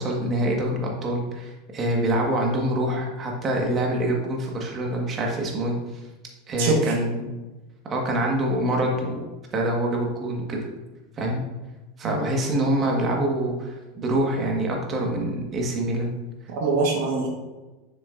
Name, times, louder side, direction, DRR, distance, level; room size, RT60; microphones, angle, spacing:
voice 1, 0.0-5.7 6.5-7.3 7.9-9.3 9.5-10.6 11.2-11.4 12.0-16.1, right 1 dB, 30° right, 0 dB, 1.5 m, -25 dB
voice 2, 6.6-6.9 12.0-12.3 16.5-17.3, right 3 dB, 70° right, 0 dB, 1.3 m, -23 dB
6.9 x 6.7 x 2.6 m, 1.1 s
supercardioid pair, 120°, 0 cm